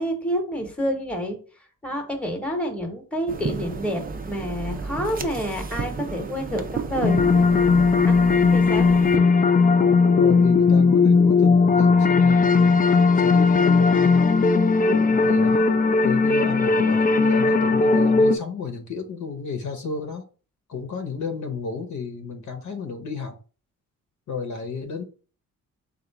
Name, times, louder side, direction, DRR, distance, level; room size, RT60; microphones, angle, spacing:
voice 1, 0.0-1.4 1.8-7.2 8.1-8.9, equal, 5° left, 1.0 m, -28 dB
sound 1, 3.3-9.2, right 4 dB, 30° right, 0.5 m, -32 dB
sound 2, 7.0-18.4, left 4 dB, 30° left, 0.4 m, -18 dB
voice 2, 8.8-9.1 10.1-15.7 16.0-20.2 20.7-23.3 24.3-25.0, left 5 dB, 65° left, 0.9 m, -32 dB
3.9 x 2.5 x 4.5 m
wide cardioid pair, 125°, 32 cm